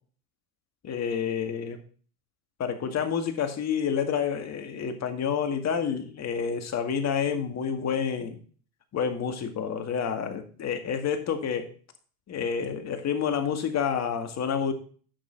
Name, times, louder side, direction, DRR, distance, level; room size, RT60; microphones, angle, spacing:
voice 1, 0.8-1.8 2.6-8.4 8.9-11.7 12.3-14.7, left 7 dB, 35° left, 7 dB, 2.1 m, -29 dB
10.0 x 6.7 x 4.0 m, 0.42 s
supercardioid pair, 100°, 43 cm